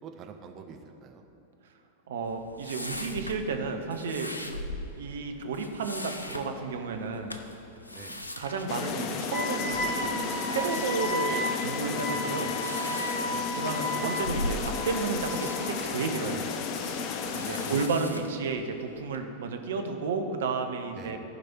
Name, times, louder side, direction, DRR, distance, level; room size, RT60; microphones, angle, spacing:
voice 1, 0.0-1.2 7.9-8.2 13.1-13.4 17.3-17.8 20.9-21.2, right 6 dB, 35° right, 5 dB, 0.9 m, -46 dB
voice 2, 2.1-4.4 5.0-7.3 8.4-12.5 13.6-16.4 17.3-21.2, right 4 dB, 60° right, 5 dB, 0.9 m, -32 dB
sound 1, 2.2-19.2, left 1 dB, 85° left, 0.6 m, -41 dB
sound 2, 8.7-17.9, left 5 dB, 40° left, 0.7 m, -33 dB
Wind instrument woodwind instrument, 9.3-15.7, left 1 dB, 25° left, 1.6 m, -34 dB
14.5 x 5.2 x 4.4 m, 2.9 s
figure-of-eight pair, 90°, 0 cm